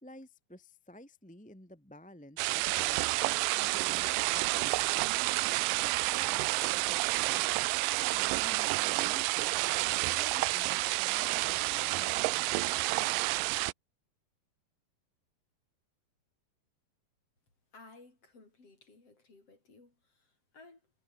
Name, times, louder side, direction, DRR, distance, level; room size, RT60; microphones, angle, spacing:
voice 1, 0.0-3.0 3.6-5.3 5.7-7.5 8.1-9.6 10.0-12.9, left 1 dB, 5° left, 1.7 m, -53 dB
sound 1, 2.4-13.7, right 22 dB, 80° right, 2.1 m, -30 dB
voice 2, 17.7-20.9, left 3 dB, 40° left, 7.2 m, -57 dB
omnidirectional pair, 4.1 m